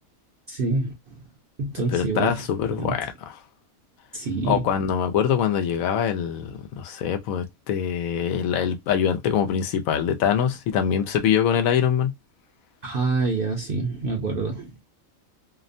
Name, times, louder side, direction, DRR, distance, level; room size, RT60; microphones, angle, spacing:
voice 1, 0.5-1.2 1.6-2.4 2.8-3.0 4.1-4.6 12.8-14.7, right 3 dB, 55° right, 0.6 m, -26 dB
voice 2, 1.9-3.3 4.4-12.1, left 8 dB, 80° left, 1.0 m, -24 dB
2.8 x 2.1 x 2.5 m
omnidirectional pair, 1.5 m